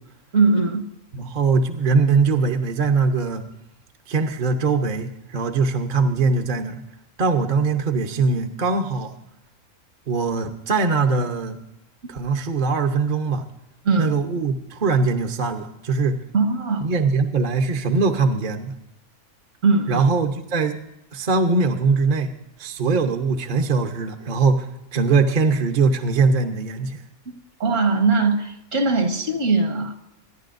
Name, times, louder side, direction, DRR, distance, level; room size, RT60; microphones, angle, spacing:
voice 1, 0.3-0.8 13.9-14.2 16.3-16.9 19.6-20.0 27.6-29.9, right 3 dB, 60° right, 4 dB, 1.8 m, -20 dB
voice 2, 1.1-3.4 4.1-6.8 7.2-9.1 10.1-11.6 12.1-13.4 14.0-16.2 16.8-18.7 19.9-20.8 21.1-22.3 22.6-27.0, right 4 dB, 40° right, 5 dB, 0.9 m, -21 dB
23.5 x 11.0 x 2.6 m, 0.88 s
omnidirectional pair, 1.5 m